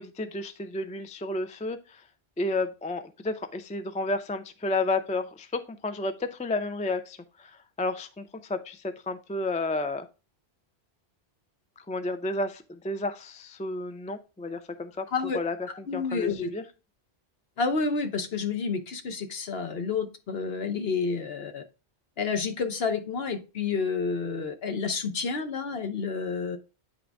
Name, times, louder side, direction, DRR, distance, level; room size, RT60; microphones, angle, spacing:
voice 1, 0.0-2.1 2.4-10.1 11.8-15.1 15.3-16.6, left 2 dB, 10° left, 9 dB, 0.3 m, -32 dB
voice 2, 15.9-16.5 17.6-21.6 22.2-26.6, left 5 dB, 65° left, 7 dB, 1.1 m, -29 dB
9.1 x 3.8 x 3.4 m, 0.30 s
omnidirectional pair, 1.1 m